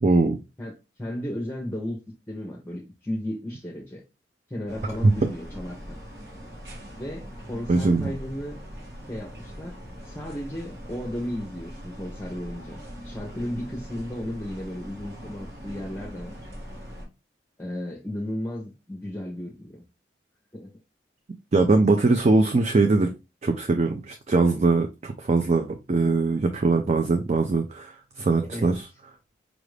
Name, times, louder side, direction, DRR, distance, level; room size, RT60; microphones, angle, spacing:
voice 1, 0.0-0.4 5.0-5.1 7.7-8.1 21.5-23.1 23.4-28.9, right 3 dB, 40° right, 0.4 m, -21 dB
voice 2, 0.6-2.0 2.3-4.0 4.5-6.0 7.0-8.6 9.1-9.8 10.0-12.8 13.0-16.4 17.6-19.8 20.5-20.7 25.9-26.2 28.5-28.7, left 1 dB, 10° left, 0.7 m, -34 dB
sound 1, 4.7-17.1, equal, 65° right, 1.4 m, -41 dB
4.9 x 2.5 x 3.2 m
head